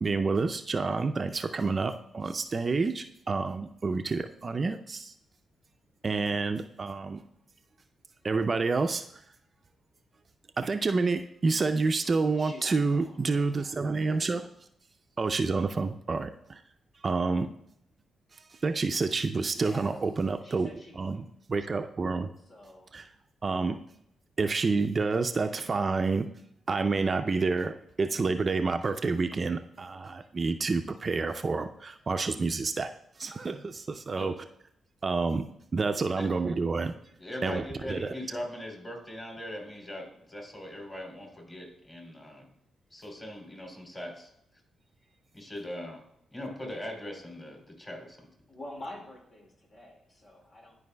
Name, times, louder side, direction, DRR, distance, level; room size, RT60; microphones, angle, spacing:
voice 1, 0.0-5.1 6.0-7.2 8.2-9.2 10.6-14.4 15.2-16.6 17.0-17.5 18.6-20.7 21.0-21.2 21.5-22.3 22.9-23.0 23.4-23.8 24.4-26.3 26.7-32.9 33.2-34.3 35.0-35.5 35.7-36.9 37.4-37.6 37.9-38.1, right 4 dB, 45° right, 7 dB, 0.4 m, -28 dB
voice 2, 12.4-13.8 15.7-15.9 19.5-20.0 20.4-21.2 22.5-22.9 46.4-46.6 48.5-50.7, left 1 dB, 55° left, -1 dB, 2.1 m, -47 dB
voice 3, 37.2-42.5 42.9-44.3 45.3-46.0 46.3-48.3, left 1 dB, 25° left, 1 dB, 2.9 m, -40 dB
12.0 x 4.6 x 2.2 m, 0.73 s
supercardioid pair, 60°, 0 cm